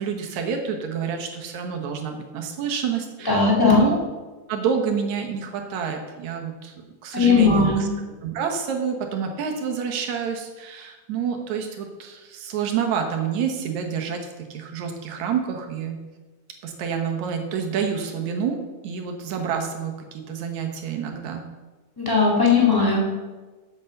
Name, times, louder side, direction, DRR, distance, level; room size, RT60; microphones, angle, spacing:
voice 1, 0.0-4.0 4.5-6.7 7.0-7.9 8.2-16.0 16.6-21.4, right 7 dB, 70° right, 4 dB, 2.5 m, -28 dB
voice 2, 3.2-3.8 7.1-7.8 22.0-23.0, left 4 dB, 10° left, -4 dB, 1.5 m, -18 dB
8.2 x 7.1 x 6.5 m, 1.3 s
omnidirectional pair, 3.5 m